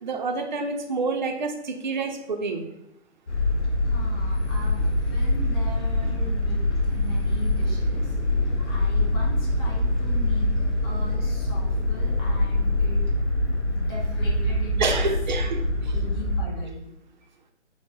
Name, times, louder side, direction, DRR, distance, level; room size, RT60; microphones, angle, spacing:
voice 1, 0.0-2.6 14.8-15.9, right 4 dB, 40° right, 4 dB, 0.5 m, -28 dB
sound 1, 3.3-16.4, left 1 dB, 80° left, 1.0 m, -24 dB
voice 2, 3.8-8.2 8.6-13.1 13.6-15.1 15.9-16.9, left 1 dB, 20° left, -3 dB, 0.8 m, -40 dB
3.9 x 2.1 x 4.0 m, 0.80 s
figure-of-eight pair, 135°, 35 cm